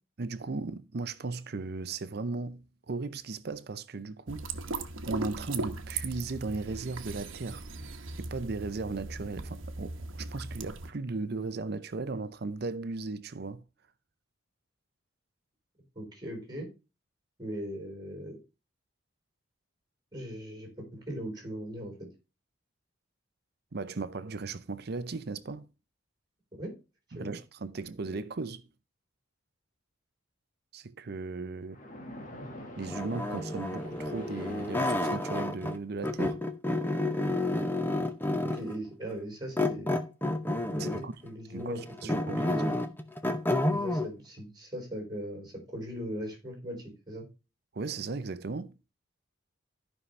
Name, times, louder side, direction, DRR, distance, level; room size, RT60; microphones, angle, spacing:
voice 1, 0.2-4.6 5.1-7.7 8.2-13.6 23.7-25.7 27.1-28.7 30.7-31.8 32.8-36.4 40.8-41.1 41.5-42.5 47.7-48.9, right 3 dB, 50° right, 0.6 m, -37 dB
sound 1, 4.3-10.9, right 3 dB, 70° right, 1.1 m, -38 dB
voice 2, 16.0-16.7 17.4-18.4 20.1-22.1 26.6-26.7 27.1-27.3 38.4-39.9 40.7-42.8 43.7-47.3, equal, 20° right, 4.2 m, -39 dB
Splash splatter, 31.7-35.7, left 1 dB, 40° left, 1.6 m, -46 dB
sound 2, 32.9-35.8 36.0-38.7 39.6-41.1 41.6-44.1, left 1 dB, 10° left, 0.8 m, -30 dB
14.0 x 5.5 x 3.2 m
head